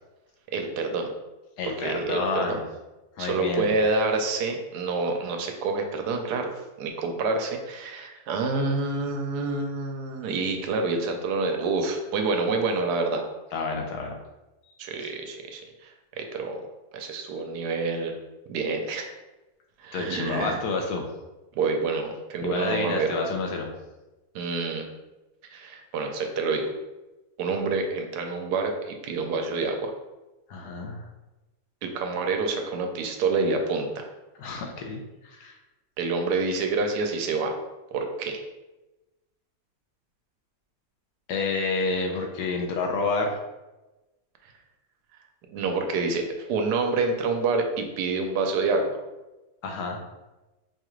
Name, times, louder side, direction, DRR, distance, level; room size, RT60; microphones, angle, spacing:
voice 1, 0.5-1.1 1.6-2.6 3.2-13.2 14.8-16.6 16.9-18.1 18.5-19.2 19.8-20.6 21.6-23.1 24.3-24.9 25.5-26.7 27.4-29.9 31.8-34.1 36.0-37.6 37.9-38.4 45.5-49.0, right 3 dB, 85° right, 4 dB, 1.1 m, -27 dB
voice 2, 1.6-2.6 3.2-3.7 13.5-14.2 19.9-21.1 22.4-23.7 30.5-31.0 34.4-35.6 41.3-43.4 49.6-50.0, left 3 dB, 80° left, 2 dB, 1.2 m, -29 dB
4.8 x 2.4 x 3.1 m, 1.1 s
omnidirectional pair, 1.7 m